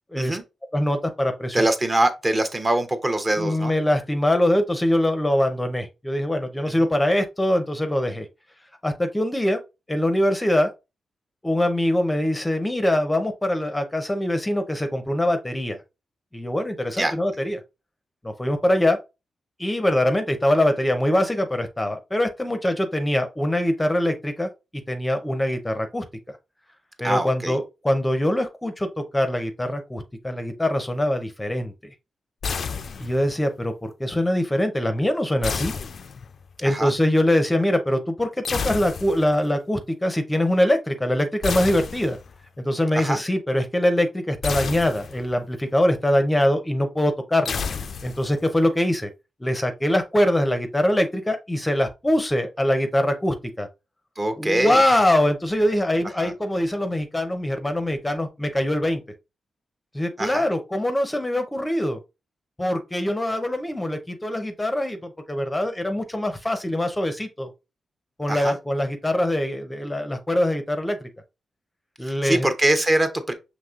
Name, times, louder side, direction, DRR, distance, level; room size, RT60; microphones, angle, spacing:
voice 1, 0.7-1.6 3.4-8.3 8.8-9.6 9.9-10.7 11.4-15.8 16.3-17.6 18.2-19.0 19.6-24.5 24.9-26.0 27.0-28.9 29.1-31.7 33.0-35.7 36.6-42.2 42.6-47.6 48.0-49.1 49.4-53.7 54.4-59.0 59.9-62.0 62.6-65.0 65.3-67.5 68.2-71.1 72.0-72.5, left 1 dB, 15° left, 0.6 m, -23 dB
voice 2, 1.5-3.7 6.7-6.9 17.0-17.1 27.0-27.6 36.6-36.9 42.9-43.2 54.2-54.8 56.2-56.3 60.2-60.4 68.3-68.5 72.0-73.3, right 1 dB, 25° right, 0.7 m, -23 dB
sound 1, 32.4-33.4 35.4-36.5 38.4-39.4 41.4-42.4 44.4-45.4 47.5-48.5, left 5 dB, 60° left, 0.3 m, -31 dB
5.8 x 3.0 x 2.4 m
cardioid pair, 90°, 0 cm